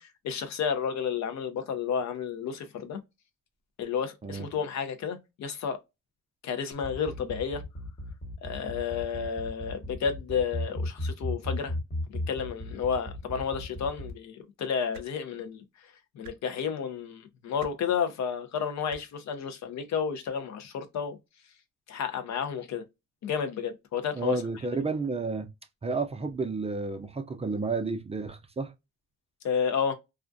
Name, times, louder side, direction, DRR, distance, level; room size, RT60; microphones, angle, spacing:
voice 1, 0.0-3.0 3.8-5.8 6.4-7.6 8.4-11.7 12.1-21.2 21.9-22.8 23.2-24.4 29.4-29.9, left 7 dB, 65° left, 0.6 m, -31 dB
sound 1, 6.7-14.1, left 1 dB, 30° left, 1.1 m, -35 dB
sound 2, 14.9-15.1 16.2-16.4 17.6-17.7 18.9-19.0 20.3-20.4, right 4 dB, 65° right, 0.6 m, -47 dB
voice 2, 24.2-25.5 25.8-28.7, right 3 dB, 20° right, 0.4 m, -31 dB
2.4 x 2.1 x 2.5 m
cardioid pair, 90°, 30 cm